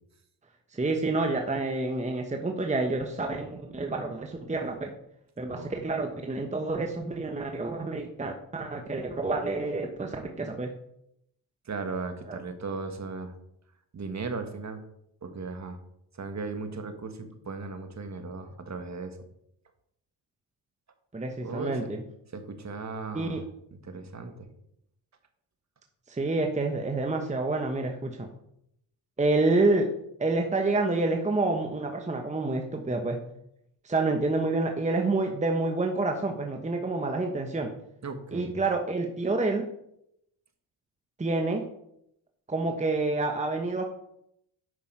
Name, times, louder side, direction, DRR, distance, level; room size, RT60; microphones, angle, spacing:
voice 1, 0.7-4.9 5.4-10.7 12.3-12.4 21.1-22.0 23.1-23.4 26.1-28.3 29.2-29.9 30.2-33.2 33.8-37.7 38.3-39.7 41.2-41.6 42.5-43.8, right 2 dB, 15° right, 4 dB, 1.1 m, -28 dB
voice 2, 11.6-13.3 13.9-14.8 15.2-15.8 16.1-19.2 21.4-21.9 22.3-23.5 23.8-24.5 38.0-38.6, right 4 dB, 35° right, 7 dB, 1.6 m, -36 dB
9.8 x 6.0 x 4.6 m, 0.77 s
cardioid pair, 80°, 46 cm